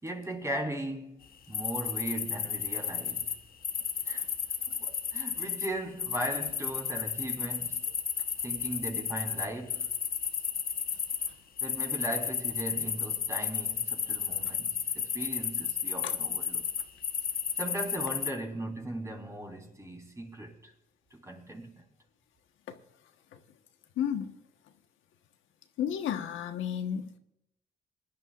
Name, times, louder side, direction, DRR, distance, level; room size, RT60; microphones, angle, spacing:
voice 1, 0.0-3.3 4.1-4.3 4.7-7.8 8.4-9.9 11.6-16.7 17.6-20.7 21.1-21.8, right 1 dB, 15° right, 3.9 m, -38 dB
sound 1, 1.5-3.3 3.6-5.7 6.0-11.3 11.6-18.3, left 7 dB, 50° left, 1.1 m, -33 dB
voice 2, 24.0-24.4 25.8-27.2, left 9 dB, 80° left, 1.3 m, -32 dB
23.5 x 11.5 x 2.5 m
cardioid pair, 90°, 20 cm